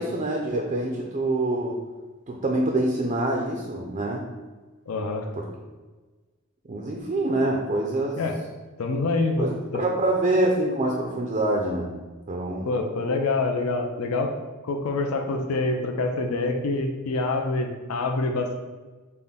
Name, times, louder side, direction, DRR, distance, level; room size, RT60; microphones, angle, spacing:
voice 1, 0.0-1.8 2.3-4.2 5.4-5.5 6.7-8.2 9.4-11.9 12.3-12.7, right 1 dB, 30° right, 0 dB, 0.4 m, -25 dB
voice 2, 4.9-5.3 8.1-8.4 8.8-9.8 12.7-14.3 14.6-18.6, left 3 dB, 70° left, 3 dB, 0.5 m, -26 dB
5.6 x 2.1 x 3.5 m, 1.3 s
head